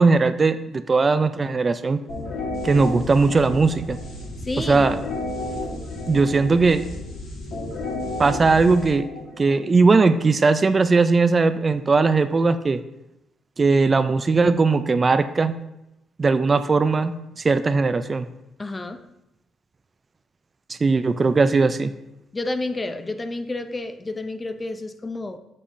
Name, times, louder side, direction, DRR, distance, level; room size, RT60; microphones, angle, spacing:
voice 1, 0.0-2.0 2.6-4.0 4.6-5.0 6.1-6.8 8.2-9.1 9.4-12.8 13.6-15.6 16.2-18.3 20.7-21.9, right 4 dB, 30° right, 11 dB, 0.3 m, -19 dB
sound 1, 2.1-9.7, left 2 dB, 85° left, 2.3 m, -32 dB
voice 2, 4.4-4.9 18.6-19.0 22.3-25.4, left 2 dB, 25° left, 9 dB, 0.5 m, -30 dB
7.4 x 6.6 x 2.6 m, 0.88 s
cardioid pair, 90°, 0 cm